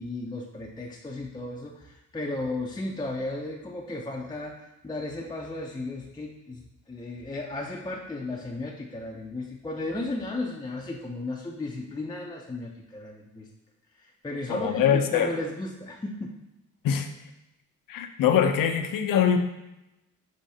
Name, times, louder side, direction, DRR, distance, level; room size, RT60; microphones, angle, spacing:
voice 1, 0.0-13.5 14.0-16.3, left 2 dB, 15° left, -1 dB, 0.5 m, -35 dB
voice 2, 14.5-15.3 16.8-17.1 17.9-19.4, left 8 dB, 70° left, 7 dB, 0.6 m, -23 dB
6.2 x 3.1 x 2.7 m, 0.94 s
cardioid pair, 85°, 34 cm